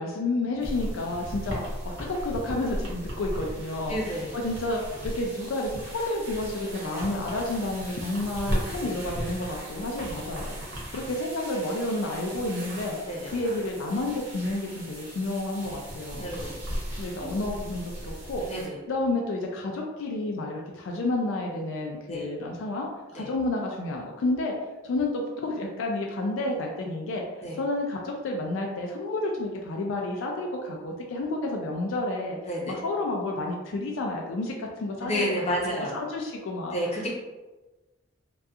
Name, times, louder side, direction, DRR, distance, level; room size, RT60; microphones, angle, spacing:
voice 1, 0.0-1.6 2.0-3.9 4.3-10.6 10.9-13.0 13.3-16.3 17.0-18.4 18.9-24.5 24.8-27.2 27.6-32.4 32.7-35.5 35.9-36.8, left 2 dB, 75° left, 0 dB, 0.3 m, -30 dB
sound 1, 0.6-18.7, equal, 65° right, 0.7 m, -37 dB
voice 2, 3.9-4.4 8.8-8.9 13.1-13.3 16.1-16.6 17.2-17.3 18.4-18.8 22.1-22.3 23.1-23.3 27.4-27.6 32.4-32.7 35.0-36.0 36.7-37.1, equal, 30° left, -4 dB, 0.6 m, -30 dB
2.7 x 2.3 x 2.3 m, 1.2 s
head